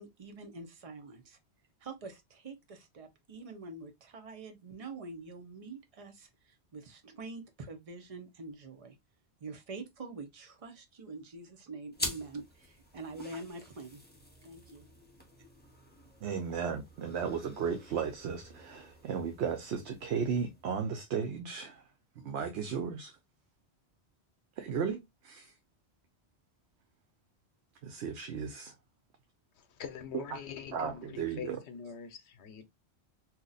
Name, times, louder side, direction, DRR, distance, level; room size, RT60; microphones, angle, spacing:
voice 1, 0.0-1.4 1.8-9.0 9.4-14.0 14.4-14.9, right 3 dB, 35° right, 0.8 m, -45 dB
sound 1, 11.9-20.9, left 1 dB, 10° left, 0.8 m, -46 dB
voice 2, 16.2-21.8 22.2-23.2 24.6-25.5 27.8-28.7 30.1-30.4 30.7-31.6, right 6 dB, 80° right, 0.9 m, -35 dB
voice 3, 29.6-32.7, left 7 dB, 80° left, 1.0 m, -44 dB
2.8 x 2.4 x 3.9 m
omnidirectional pair, 1.1 m